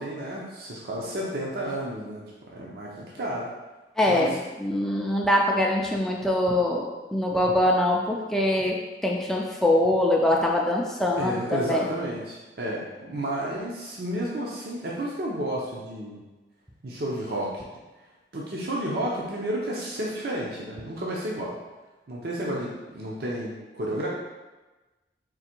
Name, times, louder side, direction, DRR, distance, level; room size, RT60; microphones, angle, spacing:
voice 1, 0.0-2.2 2.5-2.9 3.1-3.5 4.1-4.3 11.2-16.2 16.8-17.6 18.3-21.6 22.1-24.1, right 1 dB, 55° right, -4 dB, 0.6 m, -31 dB
voice 2, 4.0-6.8 7.1-8.8 9.0-11.9, left 1 dB, ahead, -2 dB, 0.3 m, -23 dB
3.8 x 2.6 x 4.4 m, 1.2 s
head